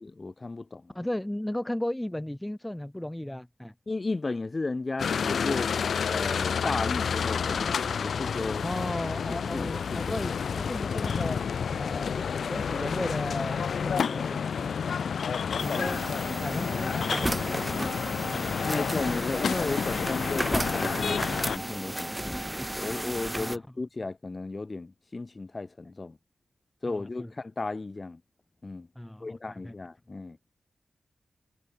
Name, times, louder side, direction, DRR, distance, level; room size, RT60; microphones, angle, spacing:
voice 1, 0.0-0.9 3.9-5.7 6.1-8.7 9.3-10.3 18.7-26.2 26.8-28.2 28.6-28.9 29.2-30.4, left 3 dB, 40° left, 1.3 m, -34 dB
voice 2, 0.9-3.7 8.6-11.4 11.7-14.7 15.6-16.0 16.4-18.2 23.4-23.6 26.9-27.3 29.0-29.7, left 1 dB, 10° left, 0.7 m, -35 dB
sound 1, 5.0-21.6, left 6 dB, 85° left, 0.3 m, -30 dB
sound 2, 15.6-23.6, right 1 dB, 10° right, 1.4 m, -33 dB
cardioid pair, 65°, 0 cm